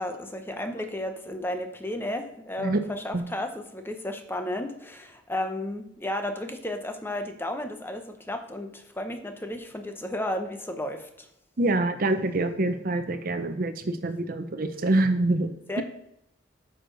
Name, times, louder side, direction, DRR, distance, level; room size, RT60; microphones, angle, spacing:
voice 1, 0.0-11.3 15.7-15.8, left 1 dB, 10° left, 6 dB, 0.8 m, -33 dB
voice 2, 11.6-15.8, right 2 dB, 50° right, 9 dB, 0.7 m, -26 dB
9.5 x 6.4 x 3.9 m, 0.79 s
head